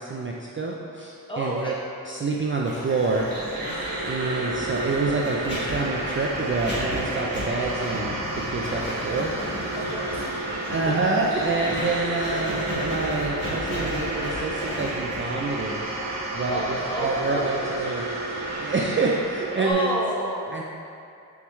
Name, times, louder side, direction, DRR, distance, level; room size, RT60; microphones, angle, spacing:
voice 1, 0.0-1.8 2.0-3.3 4.1-9.3 9.6-9.8 10.7-15.8 16.3-18.0 18.6-20.0 20.5-20.6, right 3 dB, 35° right, -2 dB, 0.4 m, -27 dB
voice 2, 1.3-1.7 9.7-10.3 10.7-10.9 16.5-17.7 19.6-20.4, right 1 dB, 15° left, -5 dB, 0.9 m, -29 dB
Writing, 2.7-17.4, left 1 dB, 30° left, 1.5 m, -35 dB
sound 1, 2.7-19.7, right 2 dB, 70° right, 1.2 m, -31 dB
sound 2, 7.9-11.9, left 2 dB, 55° left, 0.7 m, -44 dB
7.2 x 4.6 x 3.1 m, 2.6 s
wide cardioid pair, 175°, 36 cm